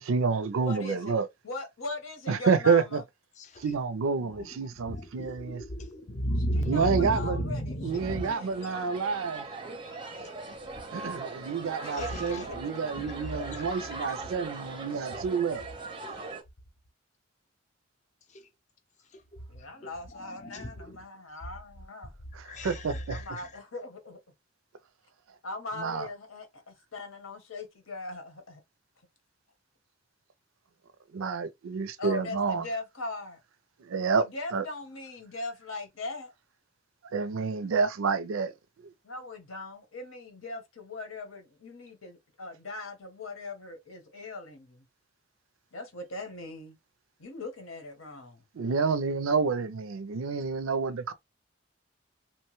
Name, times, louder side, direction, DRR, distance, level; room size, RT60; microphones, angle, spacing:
voice 1, 0.0-1.3 2.3-3.0 3.6-5.6 6.7-7.4 7.8-9.5 10.9-15.6 22.3-23.2 25.8-26.1 31.1-32.7 33.8-34.2 34.5-34.6 37.1-38.5 38.8-38.9 48.5-51.1, right 5 dB, 80° right, 0.4 m, -29 dB
voice 2, 0.6-1.2 1.4-3.0 6.7-7.8 8.3-8.7 11.8-12.1 12.4-12.5 19.5-22.1 23.1-24.2 25.4-28.6 32.0-33.4 34.1-36.3 39.0-44.8 45.7-46.8 47.2-48.4, left 2 dB, 80° left, 0.9 m, -40 dB
voice 3, 3.4-3.7 4.2-8.5 10.8-10.9 11.9-12.5 13.0-14.2 15.1-15.2 16.0-16.2 18.3-18.5 19.1-19.4 19.8-21.0 22.4-23.5, equal, 35° left, 0.5 m, -35 dB
sound 1, 7.9-16.4, right 3 dB, 25° right, 0.5 m, -40 dB
2.9 x 2.1 x 3.0 m
head